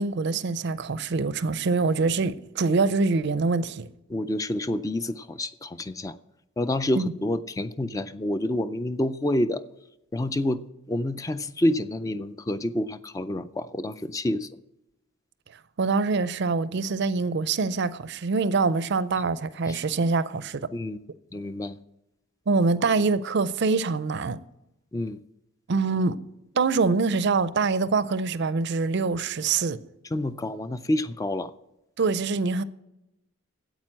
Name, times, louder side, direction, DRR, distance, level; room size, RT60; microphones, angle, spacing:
voice 1, 0.0-3.9 6.9-7.1 15.8-20.7 22.5-24.4 25.7-26.2 26.5-29.8 32.0-32.6, right 4 dB, 55° right, 0.5 m, -24 dB
voice 2, 4.1-6.2 6.6-9.6 10.1-14.5 19.7-19.8 20.7-21.0 21.3-21.8 24.9-25.2 30.1-31.5, left 1 dB, 15° left, 0.3 m, -28 dB
9.0 x 8.3 x 7.3 m
head